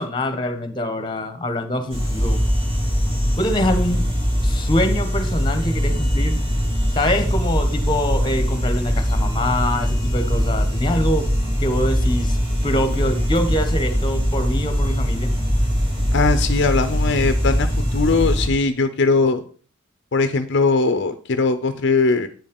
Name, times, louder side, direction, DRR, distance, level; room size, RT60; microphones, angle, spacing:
voice 1, 0.0-2.4 3.4-4.0 4.4-6.4 6.9-11.3 11.6-12.4 12.6-15.3, left 1 dB, 25° left, 8 dB, 1.1 m, -24 dB
sound 1, 1.9-18.5, equal, 25° right, 2.5 m, -21 dB
voice 2, 16.1-19.4 20.1-22.3, left 3 dB, 60° left, 9 dB, 0.6 m, -20 dB
9.2 x 5.3 x 5.3 m, 0.42 s
head